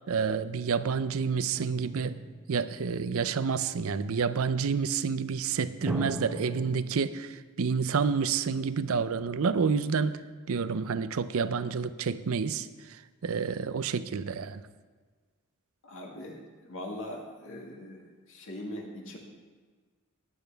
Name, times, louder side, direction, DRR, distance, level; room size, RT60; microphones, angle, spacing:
voice 1, 0.1-2.2 2.5-10.2 10.5-12.7 13.2-14.6, right 5 dB, 70° right, 14 dB, 0.5 m, -29 dB
sound 1, 1.5-3.3 5.9-6.8, right 1 dB, 5° right, 1.3 m, -38 dB
voice 2, 15.8-16.4 16.6-19.2, left 1 dB, 60° left, 0 dB, 1.9 m, -41 dB
16.0 x 10.0 x 3.4 m, 1.4 s
head